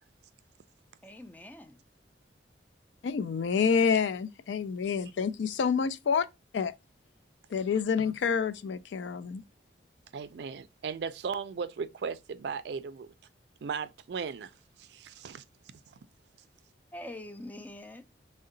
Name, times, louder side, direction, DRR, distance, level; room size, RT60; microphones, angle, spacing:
voice 1, 1.0-1.8 16.9-18.0, left 1 dB, 10° left, 0.3 m, -44 dB
voice 2, 3.0-6.2 6.5-6.7 7.5-9.4, left 6 dB, 80° left, 0.4 m, -28 dB
voice 3, 10.1-13.1 13.6-14.5 14.8-15.4, right 6 dB, 65° right, 0.3 m, -36 dB
3.7 x 2.1 x 3.7 m
head